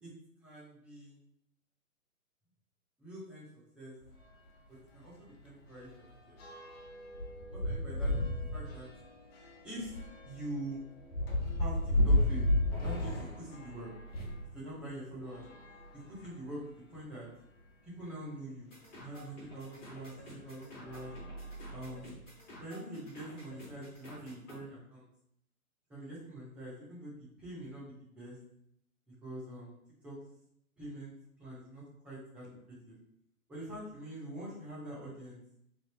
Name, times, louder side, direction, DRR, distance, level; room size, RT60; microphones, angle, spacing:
voice 1, 0.4-1.2 3.0-3.5 3.7-3.9 4.7-6.4 7.5-8.9 9.6-10.8 11.6-12.5 12.8-13.9 14.5-15.4 15.9-16.6 16.9-17.3 17.8-18.7 19.0-21.1 21.7-22.2 22.6-25.0 25.9-28.4 29.1-29.7 30.0-30.2 30.8-31.1 31.4-33.0 33.5-35.4, right 1 dB, 5° right, -9 dB, 0.5 m, -45 dB
sound 1, 4.0-4.2 4.6-4.7 5.0-14.5 15.2-16.6 17.2-17.3 17.6-17.7 19.4-19.5 20.1-20.4 20.8-22.1, left 1 dB, 40° left, 1.2 m, -34 dB
sound 2, 18.7-24.6, equal, 20° left, 1.6 m, -51 dB
3.7 x 3.3 x 3.3 m, 0.74 s
hypercardioid pair, 140°, 44 cm